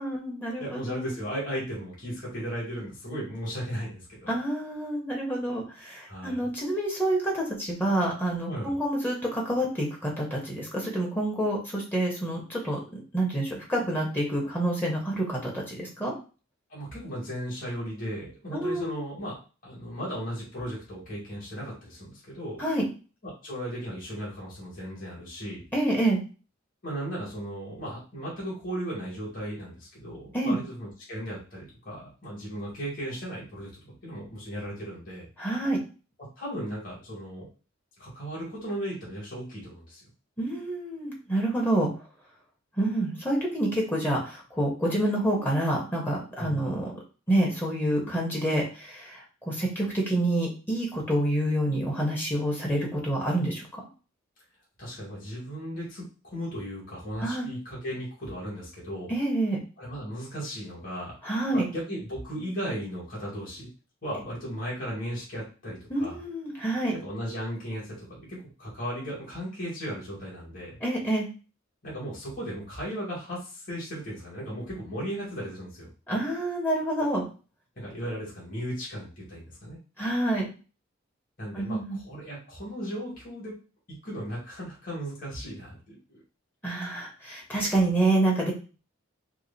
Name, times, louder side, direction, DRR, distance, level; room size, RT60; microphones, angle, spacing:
voice 1, 0.0-1.1 4.3-12.8 13.1-16.1 18.5-19.0 22.6-22.9 25.7-26.2 30.3-30.6 35.4-35.8 40.4-41.9 42.8-46.9 47.3-53.9 57.2-57.5 59.1-59.6 61.2-61.6 65.9-67.0 70.8-71.3 76.1-77.3 80.0-80.5 81.5-82.0 86.6-88.5, right 1 dB, 10° left, -2 dB, 1.0 m, -27 dB
voice 2, 0.6-4.3 6.1-6.4 8.5-8.8 16.7-19.3 19.6-22.6 23.2-25.6 26.8-35.3 36.4-37.5 38.0-40.0 46.4-46.6 54.8-56.0 56.3-59.1 59.8-61.1 61.5-63.7 64.0-66.2 67.0-70.8 71.8-75.9 77.8-79.8 81.4-83.6 83.9-86.2, equal, 45° left, -6 dB, 2.2 m, -36 dB
4.7 x 2.0 x 4.1 m, 0.35 s
head